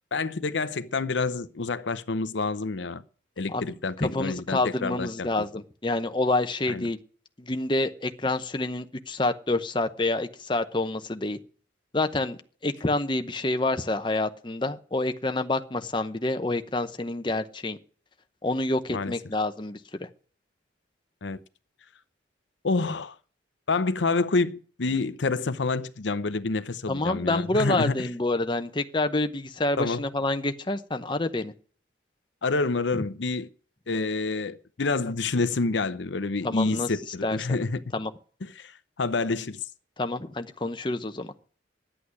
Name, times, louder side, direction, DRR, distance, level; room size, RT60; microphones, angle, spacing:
voice 1, 0.1-3.0 3.4-5.3 6.7-6.9 18.9-19.1 21.2-21.4 22.6-23.1 23.7-28.1 29.8-30.0 32.4-33.5 33.9-37.8 38.4-39.6, left 3 dB, 70° left, 0.7 m, -28 dB
voice 2, 4.0-7.0 7.4-11.4 11.9-17.8 18.4-20.1 26.9-31.5 32.9-33.0 36.4-36.9 37.2-37.4 37.9-38.1 40.0-41.3, left 2 dB, 25° left, 0.8 m, -28 dB
11.0 x 8.5 x 9.7 m
head